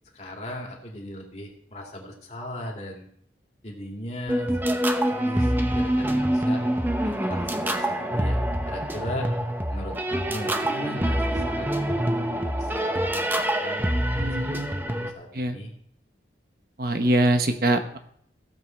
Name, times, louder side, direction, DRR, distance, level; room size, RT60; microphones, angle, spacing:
voice 1, 0.1-3.1 3.6-4.8 5.1-6.6 7.0-9.3 9.7-12.0 12.6-15.7, left 1 dB, 40° left, 0 dB, 2.5 m, -38 dB
sound 1, 4.3-15.1, right 1 dB, 10° right, 0.8 m, -25 dB
voice 2, 14.1-14.7 15.3-15.6 16.8-18.0, right 1 dB, 55° right, 7 dB, 1.2 m, -23 dB
16.0 x 7.5 x 4.5 m, 0.66 s
head